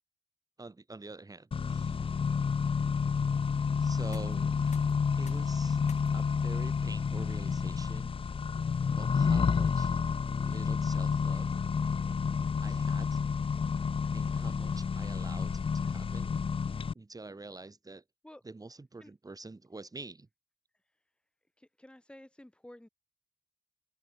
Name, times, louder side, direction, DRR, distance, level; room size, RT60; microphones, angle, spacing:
voice 1, 0.6-2.0 3.8-4.8 5.2-5.8 6.1-8.1 9.0-10.0 10.2-11.6 12.6-13.2 14.1-16.3 17.0-18.0 18.4-20.3, right 3 dB, 30° right, 3.6 m, -47 dB
Accelerating revving vroom, 1.5-16.9, left 5 dB, 45° left, 0.7 m, -30 dB
sound 1, 3.9-15.7, left 6 dB, 65° left, 4.6 m, -65 dB
voice 2, 21.8-22.9, left 1 dB, 10° left, 2.5 m, -51 dB
open air
cardioid pair, 75°, 13 cm